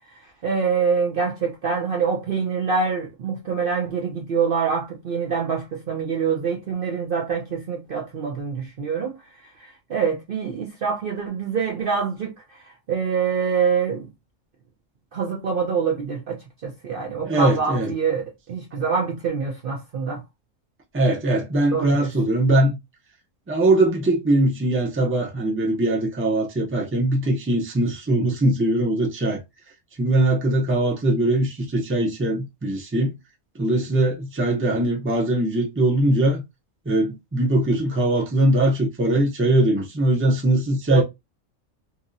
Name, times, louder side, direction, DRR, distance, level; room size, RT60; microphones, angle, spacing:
voice 1, 0.4-9.2 9.6-12.3 12.9-14.1 15.1-20.2 21.7-22.1 40.9-41.0, right 6 dB, 55° right, 0.7 m, -25 dB
voice 2, 17.2-17.9 20.9-22.8 23.5-29.4 30.0-33.1 33.6-36.4 36.9-41.0, right 1 dB, 15° right, 0.6 m, -21 dB
2.9 x 2.8 x 2.5 m
omnidirectional pair, 1.3 m